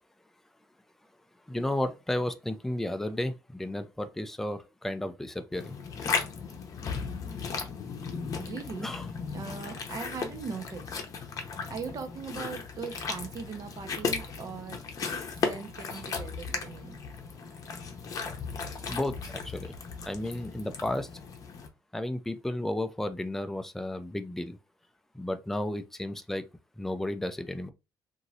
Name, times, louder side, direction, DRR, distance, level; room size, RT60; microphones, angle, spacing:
voice 1, 1.5-5.8 8.8-9.1 18.9-19.8 20.1-21.1 21.9-24.6 25.1-26.4 26.8-27.7, left 1 dB, 5° left, 0.4 m, -33 dB
sound 1, 5.5-21.7, left 5 dB, 45° left, 0.7 m, -36 dB
voice 2, 8.4-8.9 9.3-11.0 11.7-17.0 17.4-17.5, right 5 dB, 45° right, 0.6 m, -40 dB
3.0 x 2.6 x 2.6 m
cardioid pair, 130°, 8 cm